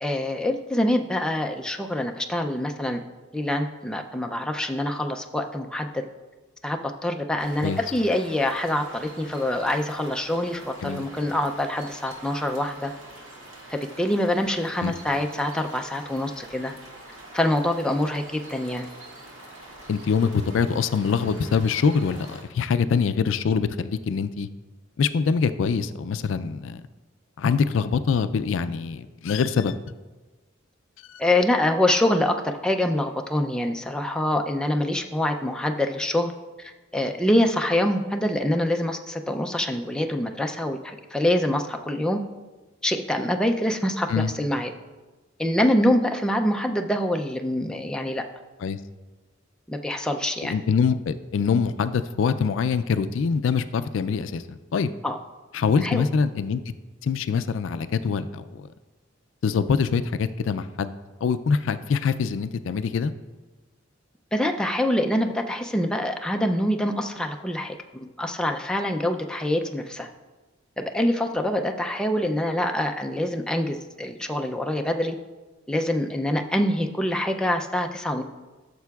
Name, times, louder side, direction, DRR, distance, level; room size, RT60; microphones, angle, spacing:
voice 1, 0.0-3.0 3.3-6.0 6.6-12.9 13.7-16.7 17.3-18.9 31.2-36.3 36.6-42.2 42.8-44.7 45.4-48.2 49.7-50.5 55.0-55.2 55.8-56.0 64.3-70.1 70.8-75.2 75.7-78.2, left 1 dB, 5° left, 3 dB, 0.4 m, -25 dB
sound 1, 7.4-22.4, right 1 dB, 80° right, 1.9 m, -45 dB
voice 2, 19.9-24.5 25.0-26.8 27.4-29.8 31.1-31.2 44.1-44.3 48.6-48.8 50.4-54.9 55.5-56.6 57.0-58.7 59.4-60.9 61.2-63.1, left 6 dB, 70° left, 12 dB, 0.4 m, -24 dB
14.0 x 6.8 x 2.3 m, 1.2 s
head